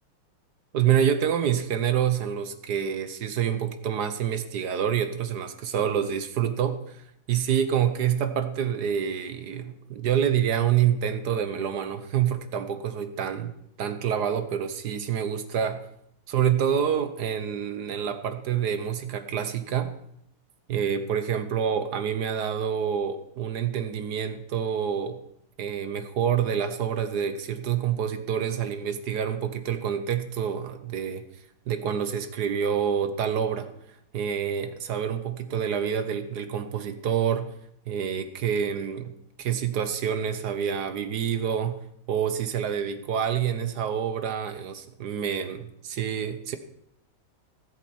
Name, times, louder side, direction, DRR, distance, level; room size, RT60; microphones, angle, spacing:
voice 1, 0.7-13.5 13.8-15.8 16.3-19.9 20.7-25.2 25.6-31.2 31.7-33.7 34.1-37.5 37.9-41.8 42.1-46.6, right 8 dB, 60° right, 9 dB, 1.2 m, -27 dB
19.0 x 7.9 x 4.4 m, 0.75 s
omnidirectional pair, 2.4 m